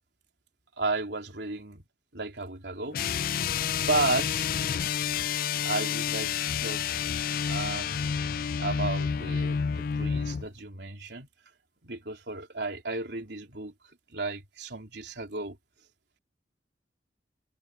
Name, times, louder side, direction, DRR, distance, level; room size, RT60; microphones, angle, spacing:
voice 1, 0.8-1.9 2.1-3.4 3.7-4.5 5.6-7.1 7.5-11.3 11.8-13.7 14.1-15.6, right 3 dB, 75° right, 3.6 m, -33 dB
sound 1, 2.9-10.5, left 7 dB, 50° left, 0.4 m, -29 dB
head